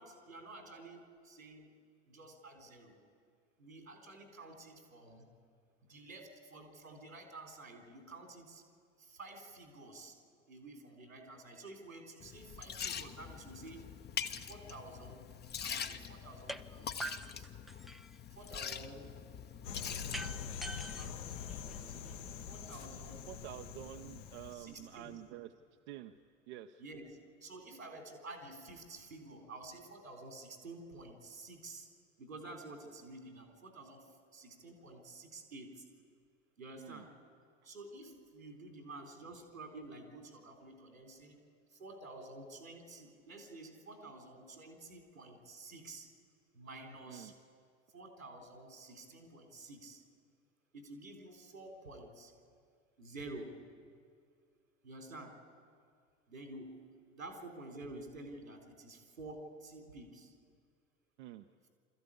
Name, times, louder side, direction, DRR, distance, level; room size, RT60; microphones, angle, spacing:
voice 1, 0.0-1.7 2.1-2.9 3.6-5.3 5.9-8.6 9.1-10.1 10.5-13.9 14.5-15.4 15.6-17.5 18.4-19.2 20.9-23.3 24.5-25.1 26.8-31.9 32.2-35.8 36.6-37.1 37.7-41.4 41.7-46.1 46.5-47.3 47.9-50.0 50.7-52.3 53.0-53.6 54.8-55.4 56.3-56.9 57.1-60.3, right 2 dB, 85° right, 2 dB, 3.7 m, -50 dB
Liquid, 12.2-24.5, left 7 dB, 25° left, 0.9 m, -45 dB
sound 1, 16.5-16.6 17.0-18.2 20.1-22.1, right 2 dB, ahead, 0.4 m, -44 dB
sound 2, 19.6-25.0, left 7 dB, 65° left, 1.4 m, -45 dB
voice 2, 23.3-25.5 25.9-26.2 26.5-26.8 36.8-37.0 47.1-47.3 61.2-61.5, right 13 dB, 60° right, 6 dB, 0.8 m, -48 dB
25.0 x 14.5 x 8.5 m, 2.1 s
figure-of-eight pair, 75°, 39 cm